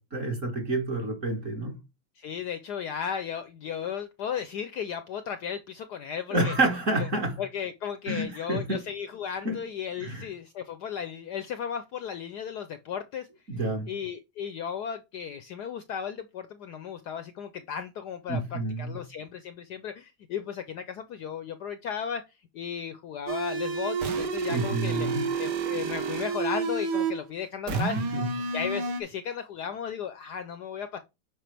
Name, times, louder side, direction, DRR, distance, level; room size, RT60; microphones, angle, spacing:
voice 1, 0.0-1.8 6.3-7.4 8.1-8.8 9.5-9.6 10.0-10.3 13.5-13.9 18.3-19.0 24.5-25.3 27.7-27.9 28.1-28.3, right 2 dB, 40° right, 2.0 m, -29 dB
voice 2, 2.2-6.5 7.0-7.1 7.4-13.3 13.9-22.2 22.5-25.1 25.4-28.0 28.5-31.0, left 8 dB, 70° left, 1.0 m, -35 dB
sound 1, 23.3-27.2 27.7-29.0, right 5 dB, 60° right, 1.7 m, -30 dB
9.0 x 5.0 x 3.4 m
omnidirectional pair, 2.2 m